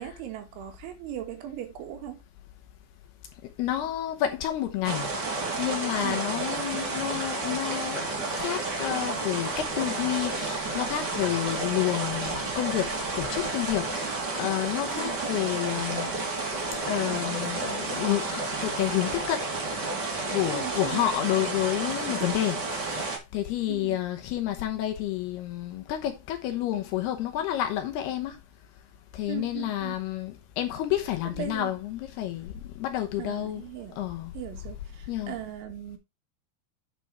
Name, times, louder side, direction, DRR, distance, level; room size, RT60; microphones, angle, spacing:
voice 1, 0.0-2.2 6.0-6.3 14.9-15.2 20.5-21.0 23.7-24.0 29.3-30.0 31.4-31.7 33.2-33.9 34.3-36.0, right 11 dB, 85° right, 3.9 m, -38 dB
voice 2, 3.4-16.1 16.9-19.5 20.3-28.4 29.1-33.7 34.0-34.3 35.1-35.4, left 13 dB, 75° left, 2.6 m, -30 dB
sound 1, 4.8-23.2, right 3 dB, 45° right, 1.3 m, -31 dB
9.3 x 5.1 x 4.6 m
omnidirectional pair, 5.3 m